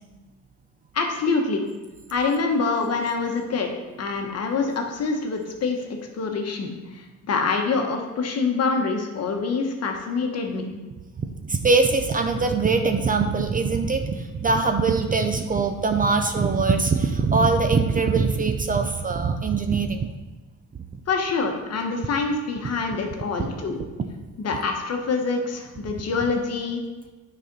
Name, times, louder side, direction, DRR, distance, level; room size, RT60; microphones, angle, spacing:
voice 1, 0.9-1.7 2.1-3.7 4.0-5.9 6.1-10.7 21.1-23.8 24.4-26.8, left 4 dB, 50° left, 3 dB, 1.2 m, -25 dB
voice 2, 11.4-20.1 23.4-23.5, right 4 dB, 25° right, 6 dB, 0.5 m, -22 dB
9.4 x 4.2 x 5.3 m, 1.2 s
cardioid pair, 150°, 32 cm